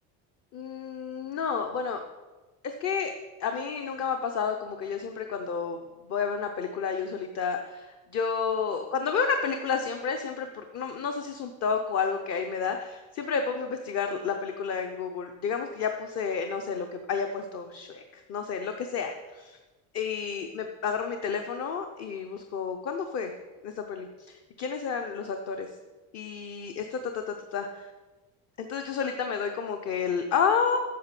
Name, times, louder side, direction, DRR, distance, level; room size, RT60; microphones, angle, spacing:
voice 1, 0.5-2.0 2.6-3.1 3.4-19.6 19.9-23.3 23.6-25.7 26.1-27.9 28.6-30.8, left 6 dB, 40° left, 5 dB, 0.7 m, -31 dB
8.5 x 6.1 x 7.4 m, 1.2 s
cardioid pair, 165°, 42 cm